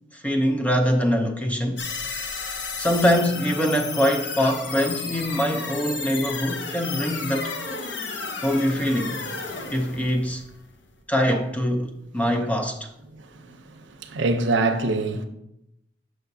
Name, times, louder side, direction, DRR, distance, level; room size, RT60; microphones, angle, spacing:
voice 1, 0.2-1.8 2.8-7.5 8.4-9.2 9.7-10.4 11.1-12.9, equal, 10° left, 0.5 m, -23 dB
sound 1, 1.8-11.0, left 4 dB, 65° left, 0.8 m, -33 dB
voice 2, 14.0-15.3, right 3 dB, 70° right, 0.6 m, -23 dB
7.0 x 6.2 x 2.6 m
head